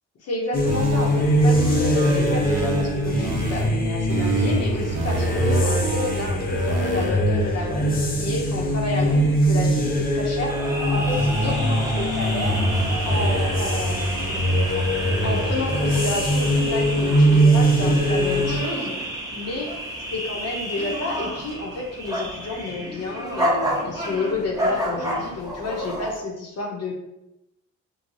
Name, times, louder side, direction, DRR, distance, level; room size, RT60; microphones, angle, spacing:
voice 1, 0.2-12.7 13.0-14.9 15.2-19.0 19.3-19.7 20.1-26.9, left 2 dB, 55° left, -1 dB, 0.9 m, -30 dB
sound 1, 0.5-18.6, equal, 30° left, 0.6 m, -22 dB
sound 2, 0.7-3.7 4.1-7.1, right 4 dB, 90° right, 0.5 m, -28 dB
sound 3, 10.5-26.2, right 1 dB, 10° right, 1.1 m, -30 dB
4.7 x 2.3 x 2.6 m, 0.87 s
cardioid pair, 90°, 30 cm